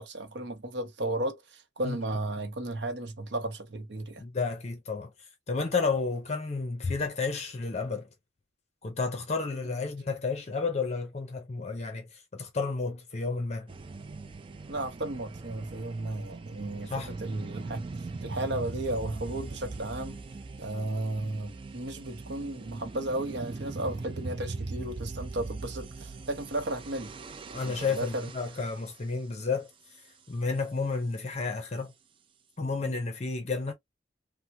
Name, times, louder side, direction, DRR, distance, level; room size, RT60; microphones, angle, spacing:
voice 1, 0.0-4.2 14.7-20.2 20.6-27.2 27.5-28.3, right 1 dB, 70° right, 0.7 m, -34 dB
voice 2, 4.2-5.1 5.5-8.1 8.8-13.7 16.9-17.1 27.5-29.7 30.3-31.9 32.6-33.7, left 4 dB, 35° left, 0.6 m, -31 dB
sound 1, 13.7-28.9, right 3 dB, 30° right, 0.3 m, -40 dB
3.4 x 2.0 x 2.7 m
head